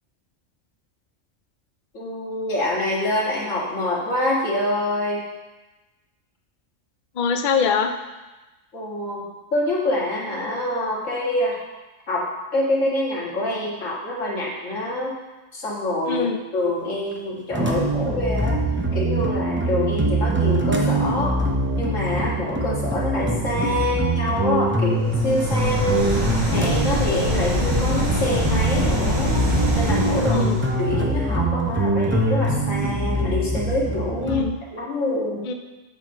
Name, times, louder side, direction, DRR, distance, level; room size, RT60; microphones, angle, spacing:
voice 1, 1.9-5.2 8.7-9.2 9.5-11.6 12.1-12.2 12.5-15.1 15.5-16.3 16.5-18.6 18.9-21.4 21.7-26.2 26.5-29.4 29.8-30.5 30.8-34.4 34.7-35.5, left 1 dB, 70° left, -5 dB, 2.2 m, -25 dB
voice 2, 7.2-7.9 16.1-16.4 27.3-27.4 30.3-30.6 34.2-34.6 35.4-35.5, left 5 dB, 50° left, 5 dB, 0.6 m, -23 dB
sound 1, 17.5-34.4, right 2 dB, 15° right, 0.5 m, -23 dB
sound 2, 25.0-30.7, left 1 dB, 60° right, 3.5 m, -24 dB
8.1 x 6.2 x 3.7 m, 1.1 s
omnidirectional pair, 1.4 m